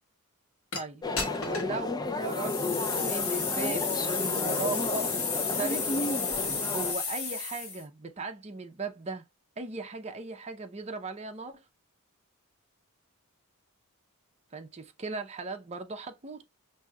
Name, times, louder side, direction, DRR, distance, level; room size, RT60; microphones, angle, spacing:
sound 1, 0.7-0.8 1.2-1.7 2.2-7.8, left 5 dB, 65° left, 1.4 m, -32 dB
voice 1, 0.7-1.0 1.3-6.0 6.7-9.2 9.6-11.6 14.5-16.4, right 3 dB, 30° right, 0.6 m, -38 dB
sound 2, 1.0-6.9, left 2 dB, 20° left, 0.3 m, -32 dB
6.0 x 2.7 x 2.2 m
head